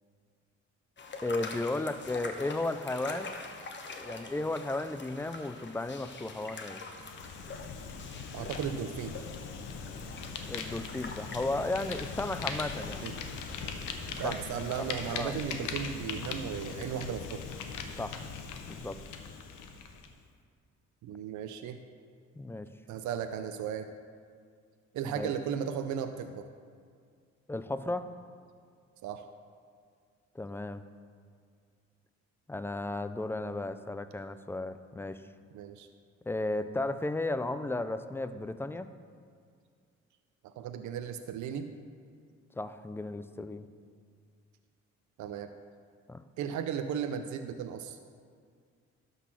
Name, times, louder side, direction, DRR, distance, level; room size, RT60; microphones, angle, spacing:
sound 1, 1.0-15.2, left 3 dB, 40° left, 1.0 m, -45 dB
voice 1, 1.2-3.3 4.0-6.8 10.5-13.1 14.2-14.4 14.8-15.3 18.0-18.2 18.7-19.0 22.4-22.7 25.1-25.3 27.5-28.1 30.4-30.8 32.5-35.2 36.3-38.9 42.6-43.7 46.1-46.2, left 2 dB, 10° left, 12 dB, 0.3 m, -34 dB
Fire, 6.8-20.1, left 5 dB, 85° left, 0.8 m, -40 dB
voice 2, 8.3-9.1 13.0-13.1 14.2-17.4 21.0-21.8 22.9-23.9 24.9-26.5 29.0-29.2 35.5-35.9 40.4-41.7 45.2-45.5 46.4-48.0, right 8 dB, 75° right, 8 dB, 0.5 m, -35 dB
12.0 x 4.1 x 6.1 m, 2.1 s
cardioid pair, 90°, 30 cm